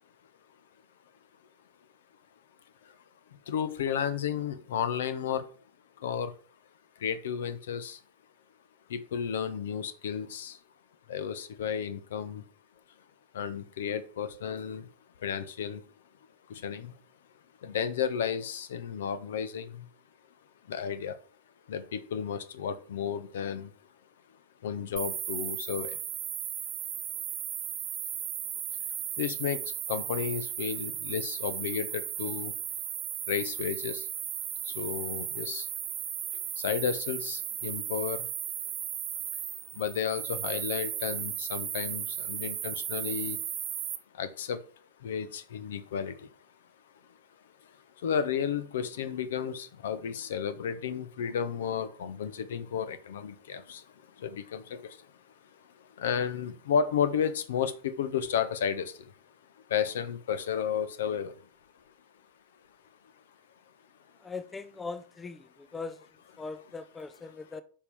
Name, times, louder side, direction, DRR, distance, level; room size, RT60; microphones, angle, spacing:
voice 1, 3.5-5.4 6.0-6.3 7.0-8.0 8.9-10.6 11.1-12.4 13.3-14.8 15.2-15.8 16.5-16.9 17.6-19.9 20.7-21.2 21.7-23.7 24.6-26.0 29.2-29.6 29.9-32.5 33.3-34.1 34.6-35.7 36.6-38.3 39.8-43.4 44.2-44.6 45.0-46.3 48.0-53.8 54.2-55.0 56.0-59.1 59.7-61.3, left 7 dB, 60° left, 0.8 m, -32 dB
sound 1, 25.0-44.0, right 11 dB, 30° right, 0.8 m, -36 dB
voice 2, 64.2-66.0 66.4-67.6, left 4 dB, 15° left, 0.5 m, -40 dB
8.5 x 5.5 x 3.5 m
figure-of-eight pair, 90°, 0 cm